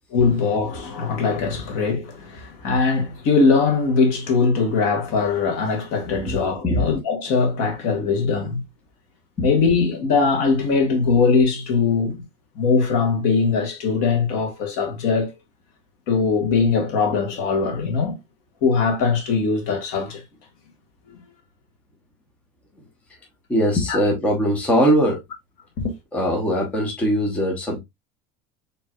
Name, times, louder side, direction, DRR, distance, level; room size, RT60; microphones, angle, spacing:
voice 1, 0.1-8.6 9.4-12.2 12.5-15.3 16.1-18.2 18.6-20.2 23.9-24.0 25.8-25.9, left 4 dB, 55° left, 1.7 m, -21 dB
voice 2, 23.5-25.2 26.1-27.8, equal, 10° left, 1.0 m, -20 dB
4.6 x 4.1 x 2.4 m
cardioid pair, 175°, 16 cm